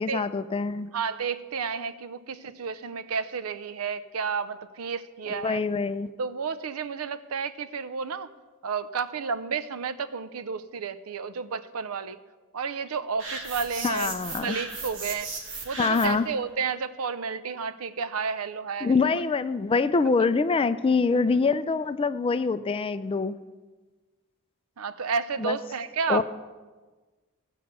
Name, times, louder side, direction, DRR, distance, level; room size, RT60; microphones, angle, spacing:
voice 1, 0.0-0.9 5.3-6.1 13.8-14.6 15.8-16.3 18.8-23.4 25.4-25.6 26.1-26.2, left 4 dB, 25° left, 12 dB, 0.3 m, -25 dB
voice 2, 0.9-5.6 6.2-8.3 8.6-12.2 12.5-14.1 14.4-15.3 15.6-19.1 24.8-26.2, right 5 dB, 75° right, 13 dB, 0.6 m, -31 dB
sound 1, 13.2-16.3, right 3 dB, 60° right, 2.2 m, -36 dB
16.0 x 5.4 x 6.6 m, 1.3 s
head